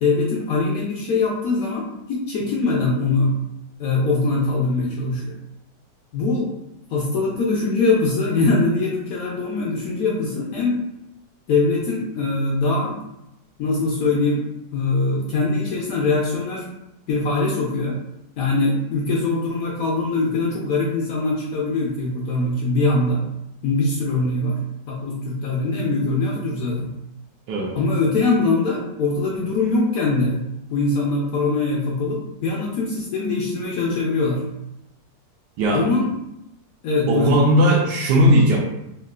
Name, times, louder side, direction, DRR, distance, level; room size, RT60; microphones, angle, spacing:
voice 1, 0.0-3.3 3.8-5.4 6.1-6.5 6.9-10.8 11.5-13.0 13.6-14.4 14.7-16.7 17.1-18.0 18.4-23.2 23.6-24.6 24.9-26.9 27.7-30.4 30.7-34.4 35.7-36.1 36.8-37.6, left 3 dB, 70° left, -3 dB, 0.8 m, -22 dB
voice 2, 35.6-35.9 37.1-38.6, equal, 75° right, -2 dB, 1.2 m, -17 dB
3.6 x 2.3 x 2.3 m, 0.86 s
omnidirectional pair, 1.9 m